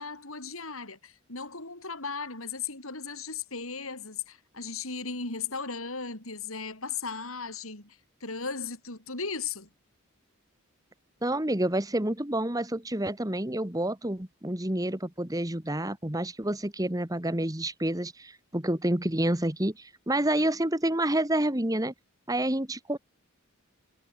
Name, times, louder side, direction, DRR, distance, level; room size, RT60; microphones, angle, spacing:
voice 1, 0.0-9.7, left 5 dB, 85° left, 7.1 m, -36 dB
voice 2, 11.2-21.9 22.3-23.0, right 1 dB, 15° right, 1.8 m, -28 dB
head